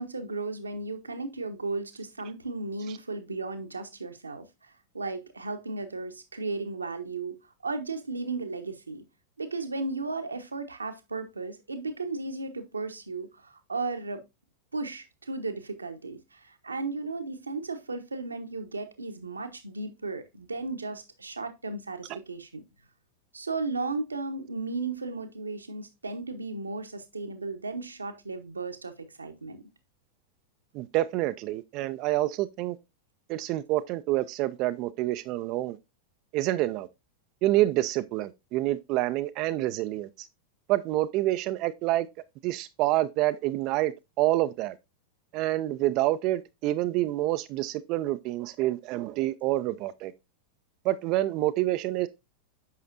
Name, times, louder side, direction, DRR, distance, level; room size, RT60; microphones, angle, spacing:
voice 1, 0.0-9.0 9.4-14.2 14.7-22.6 23.3-29.6, right 3 dB, 80° right, 1.0 m, -35 dB
voice 2, 30.7-32.8 33.3-35.8 36.3-36.9 37.4-40.1 40.7-42.1 42.4-44.8 45.3-50.1 50.8-52.1, right 16 dB, 40° right, 0.4 m, -27 dB
8.4 x 5.7 x 2.5 m
figure-of-eight pair, 90°, 0 cm